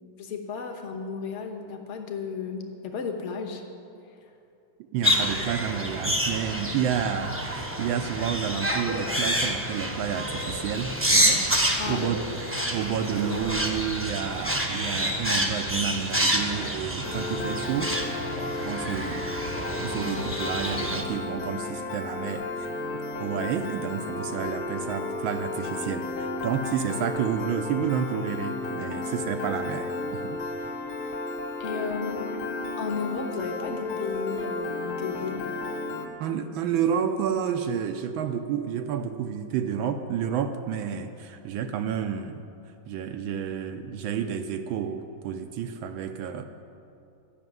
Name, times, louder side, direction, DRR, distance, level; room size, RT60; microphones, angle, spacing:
voice 1, 0.2-3.6 11.8-12.2 31.6-32.3 32.8-35.5, left 5 dB, 45° left, 3 dB, 1.1 m, -33 dB
voice 2, 4.9-12.4 12.7-19.4 19.8-22.7 23.2-30.7 36.2-42.5 42.9-46.4, right 8 dB, 80° right, 7 dB, 1.4 m, -30 dB
sound 1, 5.0-21.0, equal, 10° right, 0.6 m, -28 dB
Piano, 17.0-36.1, left 2 dB, 80° left, 1.7 m, -33 dB
12.0 x 6.4 x 9.2 m, 2.6 s
omnidirectional pair, 2.3 m